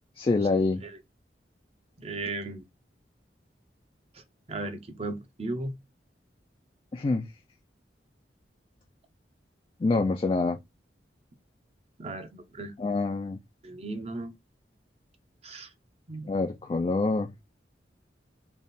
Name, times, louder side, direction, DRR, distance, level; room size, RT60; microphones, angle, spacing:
voice 1, 0.2-0.8 6.9-7.3 9.8-10.6 12.8-13.4 16.2-17.3, left 3 dB, 30° left, 0.3 m, -26 dB
voice 2, 2.0-2.7 4.1-4.2 4.5-5.7 12.0-12.7 13.6-14.3 15.4-15.7 16.1-16.3, right 2 dB, 35° right, 0.6 m, -36 dB
3.5 x 2.3 x 4.0 m
head